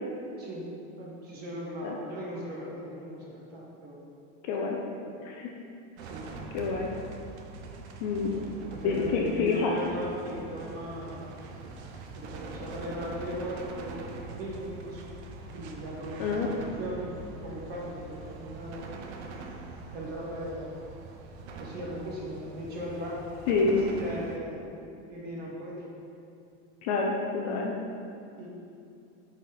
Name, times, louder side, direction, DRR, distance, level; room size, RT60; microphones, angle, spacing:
voice 1, 0.4-0.7 1.0-4.1 4.6-4.7 6.1-6.3 8.4-11.2 12.1-14.1 14.3-15.1 15.5-18.9 19.9-20.7 21.6-23.2 23.6-24.7 25.1-25.9 28.4-28.5, equal, 25° right, -4 dB, 1.4 m, -38 dB
voice 2, 4.4-4.8 5.2-5.5 6.5-6.9 8.0-8.3 8.8-9.7 16.2-16.5 23.5-23.9 26.8-27.7, left 4 dB, 35° left, -1 dB, 0.5 m, -27 dB
sound 1, 6.0-24.4, right 3 dB, 65° right, 0.9 m, -43 dB
9.4 x 4.3 x 4.0 m, 2.6 s
supercardioid pair, 175°, 36 cm